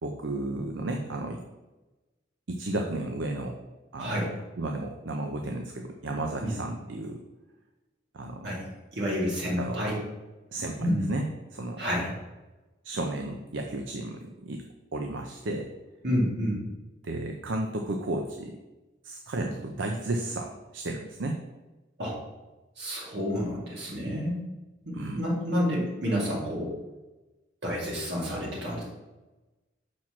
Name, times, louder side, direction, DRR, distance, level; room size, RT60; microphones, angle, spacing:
voice 1, 0.0-1.4 2.5-3.6 3.9-7.2 8.1-8.5 9.6-9.9 10.5-11.8 12.8-14.6 14.9-15.7 17.0-18.6 19.0-21.4 24.9-25.2, right 2 dB, 80° right, 3 dB, 0.6 m, -33 dB
voice 2, 4.0-4.3 6.4-6.5 8.4-8.6 8.9-10.0 10.8-11.0 11.8-12.1 16.0-16.6 22.0-22.2 22.8-24.4 24.8-26.7 27.6-28.8, equal, 65° right, -4 dB, 2.7 m, -29 dB
6.1 x 4.5 x 5.9 m, 1.1 s
head